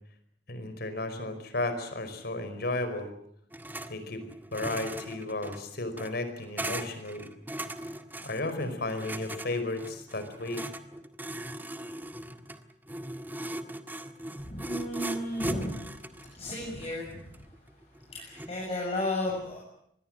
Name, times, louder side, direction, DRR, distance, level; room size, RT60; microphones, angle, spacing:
voice 1, 0.5-3.1 3.9-4.3 4.5-7.3 8.2-10.6, left 2 dB, 60° left, 10 dB, 5.1 m, -33 dB
sound 1, 3.5-3.9 4.2-18.6, right 1 dB, 10° right, 1.7 m, -39 dB
voice 2, 14.4-15.8 16.4-17.3 18.1-19.6, left 1 dB, 35° left, -2 dB, 7.5 m, -33 dB
25.5 x 20.5 x 7.9 m, 0.72 s
head